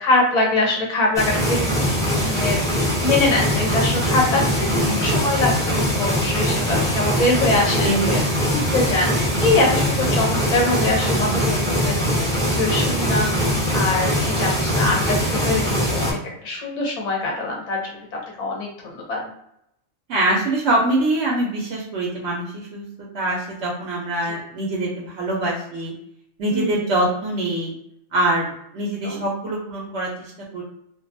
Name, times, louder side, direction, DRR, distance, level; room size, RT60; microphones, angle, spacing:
voice 1, 0.0-1.8 2.3-2.6 3.0-7.9 8.5-12.0 12.3-18.0 18.4-19.3 26.5-26.8 29.0-29.2, left 2 dB, 40° left, -1 dB, 0.6 m, -23 dB
sound 1, 1.2-16.1, equal, 5° left, 0.3 m, -21 dB
voice 2, 4.7-5.3 7.8-8.5 11.1-11.6 20.1-25.9 26.4-27.7 28.1-30.6, right 1 dB, 65° right, -2 dB, 0.8 m, -24 dB
2.4 x 2.2 x 2.6 m, 0.76 s
omnidirectional pair, 1.4 m